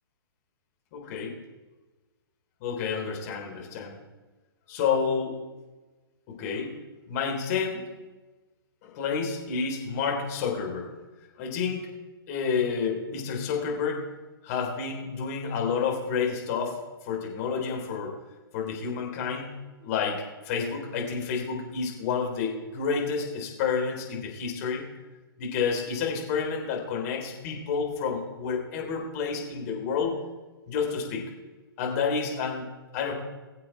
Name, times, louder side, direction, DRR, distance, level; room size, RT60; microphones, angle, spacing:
voice 1, 0.9-1.3 2.6-4.0 4.7-5.4 6.3-6.7 7.1-7.8 8.8-10.9 11.4-11.9 12.3-14.0 14.4-16.8 17.0-18.1 18.5-20.2 20.4-24.9 25.4-30.2 30.7-31.2 31.8-32.6 32.9-33.1, left 6 dB, 40° left, 0 dB, 3.5 m, -29 dB
20.5 x 7.7 x 4.7 m, 1.2 s
figure-of-eight pair, 115°, 13 cm